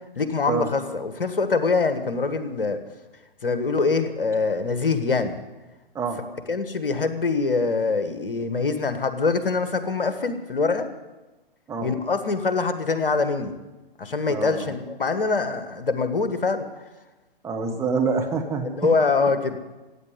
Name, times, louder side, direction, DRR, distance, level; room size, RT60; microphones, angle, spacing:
voice 1, 0.1-2.8 3.4-5.4 6.5-10.9 11.8-13.5 14.0-16.7 18.6-19.6, left 4 dB, 65° left, 10 dB, 1.5 m, -24 dB
voice 2, 14.3-14.7 17.4-18.9, right 5 dB, 10° right, 1 dB, 1.2 m, -26 dB
15.5 x 8.9 x 9.5 m, 1.1 s
figure-of-eight pair, 125°, 30 cm